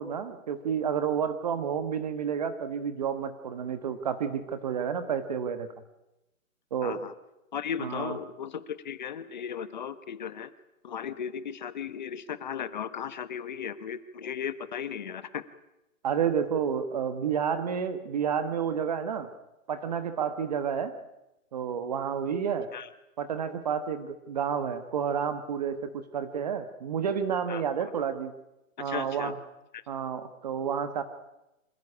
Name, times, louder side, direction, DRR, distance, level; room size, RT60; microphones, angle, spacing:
voice 1, 0.0-5.7 6.7-7.0 7.8-8.2 16.0-19.3 19.7-20.9 21.5-22.7 23.2-28.3 28.8-29.4 29.9-31.0, right 7 dB, 30° right, 10 dB, 1.3 m, -30 dB
voice 2, 6.8-7.1 7.5-10.5 10.8-15.4 22.7-22.9 27.5-27.6 28.8-29.3, left 8 dB, 35° left, 14 dB, 1.2 m, -36 dB
26.5 x 15.5 x 9.9 m, 0.93 s
hypercardioid pair, 170°, 41 cm